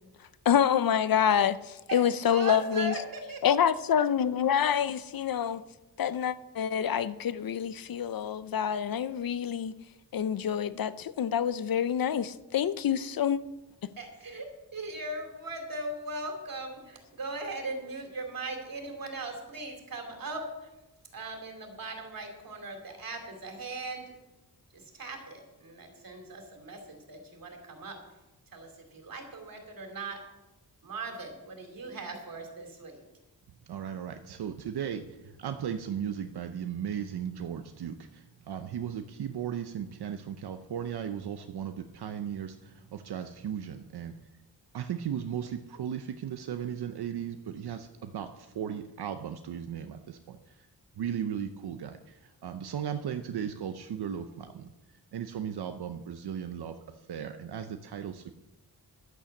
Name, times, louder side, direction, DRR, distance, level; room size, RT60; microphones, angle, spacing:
voice 1, 0.5-2.9 3.4-5.6 6.0-9.7 10.1-13.4, left 8 dB, 60° left, 0.6 m, -27 dB
voice 2, 1.9-3.5 14.0-20.7 21.1-24.0 24.7-28.0 28.5-30.2 30.8-33.0, right 2 dB, 60° right, 2.9 m, -39 dB
voice 3, 33.7-44.2 44.7-50.4 51.0-52.0 52.4-54.7 55.1-56.8 57.1-58.3, right 8 dB, 80° right, 0.7 m, -36 dB
11.5 x 8.6 x 7.1 m
wide cardioid pair, 125°, 39 cm